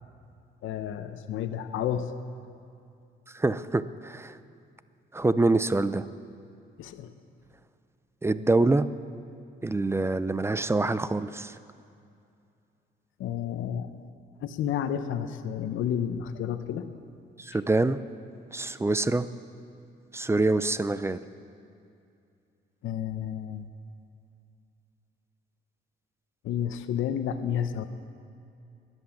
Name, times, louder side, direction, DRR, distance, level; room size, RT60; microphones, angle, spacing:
voice 1, 0.6-2.1 6.8-7.1 13.2-13.9 14.4-16.9 22.8-23.7 26.4-27.8, left 9 dB, 80° left, 9 dB, 0.8 m, -31 dB
voice 2, 3.3-4.4 5.1-6.1 8.2-8.9 9.6-11.6 17.4-18.0 18.5-19.3 20.1-21.2, right 2 dB, 15° right, 14 dB, 0.5 m, -25 dB
17.0 x 11.0 x 7.2 m, 2.5 s
cardioid pair, 90°, 20 cm